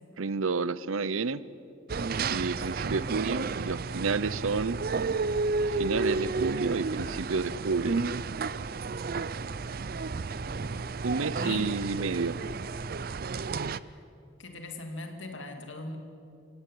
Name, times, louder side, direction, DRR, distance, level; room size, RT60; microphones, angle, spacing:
voice 1, 0.2-1.4 2.3-4.8 5.7-8.0 11.0-12.4, right 4 dB, 85° right, 18 dB, 0.7 m, -30 dB
sound 1, 1.9-13.8, right 4 dB, 45° right, 0.5 m, -32 dB
voice 2, 14.4-16.0, left 2 dB, 65° left, 5 dB, 2.7 m, -39 dB
26.0 x 17.5 x 8.5 m, 2.6 s
head